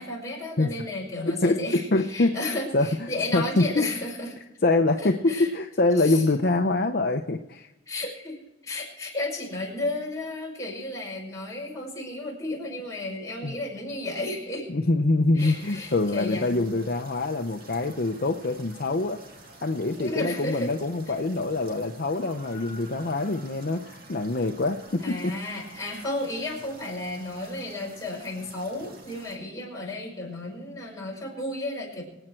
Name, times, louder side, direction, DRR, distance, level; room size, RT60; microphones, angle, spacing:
voice 1, 0.0-4.3 5.0-5.5 5.9-6.3 7.9-14.7 15.3-16.5 19.9-20.7 25.0-32.0, left 2 dB, 15° left, -2 dB, 5.4 m, -33 dB
voice 2, 1.4-3.9 4.6-7.7 13.4-13.6 14.7-19.2 19.6-25.3, left 2 dB, 50° left, 5 dB, 0.7 m, -25 dB
sound 1, 15.4-29.4, right 2 dB, 50° right, 2.3 m, -49 dB
25.0 x 8.9 x 4.5 m, 0.98 s
head